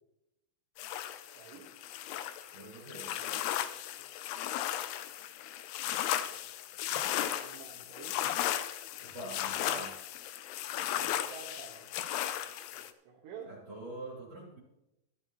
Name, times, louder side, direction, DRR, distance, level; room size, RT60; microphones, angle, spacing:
sound 1, 0.8-12.9, left 12 dB, 80° left, 2.6 m, -36 dB
voice 1, 1.3-1.7 3.1-3.4 7.2-8.3 10.9-11.9 13.1-13.5, right 6 dB, 90° right, -1 dB, 3.6 m, -49 dB
voice 2, 2.5-3.2 9.0-10.0 13.4-14.6, right 1 dB, 40° right, -5 dB, 3.6 m, -44 dB
14.5 x 12.5 x 3.0 m, 0.92 s
omnidirectional pair, 4.8 m